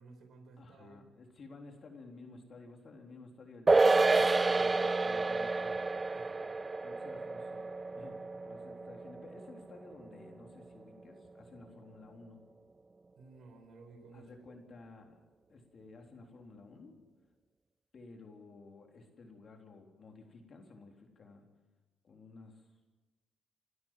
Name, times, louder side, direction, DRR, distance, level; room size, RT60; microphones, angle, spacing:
voice 1, 0.0-1.0 6.1-6.5 13.1-14.6, right 3 dB, 60° right, 4 dB, 4.5 m, -55 dB
voice 2, 0.6-5.8 6.8-12.4 14.1-15.2 15.5-16.9 17.9-21.5 22.0-22.8, left 3 dB, 45° left, 2 dB, 3.7 m, -53 dB
sound 1, 3.7-10.3 10.6-10.7, right 3 dB, 25° right, 0.6 m, -29 dB
28.0 x 12.5 x 7.6 m, 1.2 s
cardioid pair, 90°, 0 cm